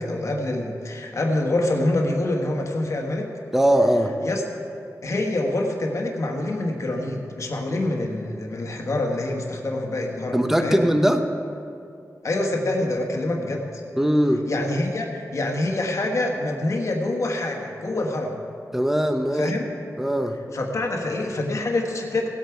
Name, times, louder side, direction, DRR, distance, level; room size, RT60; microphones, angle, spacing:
voice 1, 0.0-3.3 4.2-4.4 5.0-10.8 12.2-13.8 14.4-18.4 19.3-19.7 20.5-22.3, left 2 dB, 55° left, 1 dB, 1.4 m, -26 dB
voice 2, 3.5-4.2 10.3-11.3 14.0-14.5 18.7-19.5 20.0-20.4, equal, 5° right, 6 dB, 0.8 m, -20 dB
17.0 x 8.6 x 4.6 m, 2.5 s
wide cardioid pair, 135°, 6 cm